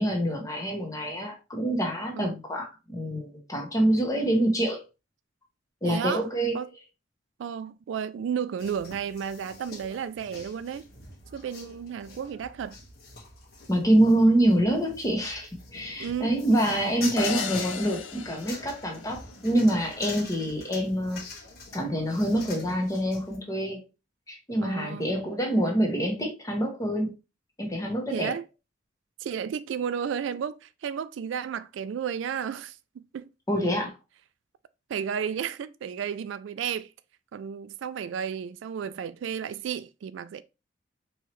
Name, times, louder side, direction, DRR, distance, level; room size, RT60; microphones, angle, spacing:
voice 1, 0.0-4.8 5.8-6.6 13.7-21.2 21.7-23.8 24.3-27.1 27.6-28.3 33.5-33.9, right 1 dB, 20° left, 1.1 m, -26 dB
voice 2, 5.8-6.2 6.5-6.7 7.4-10.9 11.3-12.8 16.0-16.6 24.6-25.1 28.1-28.5 29.2-33.3 34.9-36.9 37.3-40.4, right 7 dB, 70° right, 0.3 m, -33 dB
sound 1, 8.6-23.4, left 3 dB, 55° left, 1.5 m, -44 dB
sound 2, 17.2-19.5, left 7 dB, 85° left, 0.5 m, -35 dB
4.6 x 3.1 x 3.0 m
head